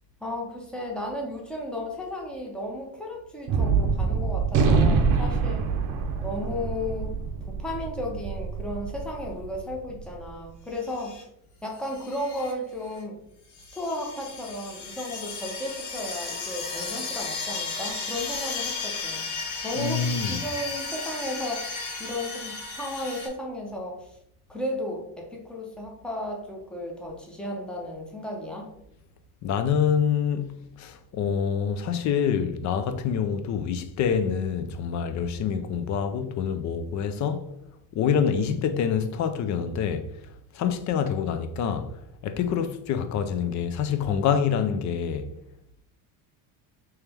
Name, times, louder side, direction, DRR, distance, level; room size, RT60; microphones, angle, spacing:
voice 1, 0.2-5.7 6.2-7.2 7.5-11.1 11.6-13.2 13.7-19.3 19.6-24.2 24.5-28.7, left 1 dB, ahead, 0.7 m, -34 dB
Gunshot gunfire, 3.5-10.0, right 5 dB, 45° right, 0.7 m, -25 dB
sound 1, 10.8-11.2 11.8-12.5 12.9-13.0 13.5-23.3, left 4 dB, 65° left, 1.4 m, -34 dB
voice 2, 19.8-20.4 29.4-37.5 37.9-40.1 40.5-41.9 42.2-45.3, left 7 dB, 40° left, 0.4 m, -26 dB
3.3 x 3.0 x 3.4 m
cardioid pair, 130°, 44 cm